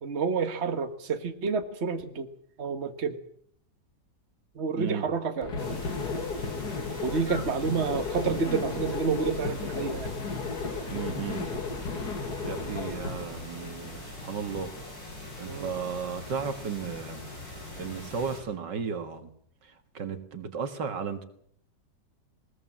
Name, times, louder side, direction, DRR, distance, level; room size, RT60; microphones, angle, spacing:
voice 1, 0.0-2.3 2.6-3.2 4.5-5.5 7.0-10.1 15.5-15.7, right 5 dB, 40° right, 7 dB, 1.6 m, -29 dB
voice 2, 4.7-5.1 10.9-11.5 12.4-14.7 15.4-17.2 17.8-19.3 19.6-21.2, right 6 dB, 75° right, 8 dB, 2.4 m, -34 dB
sound 1, 5.4-13.2, left 4 dB, 60° left, 2.7 m, -34 dB
sound 2, 5.6-18.4, left 2 dB, 85° left, 8.8 m, -42 dB
20.5 x 20.5 x 7.5 m, 0.67 s
omnidirectional pair, 1.9 m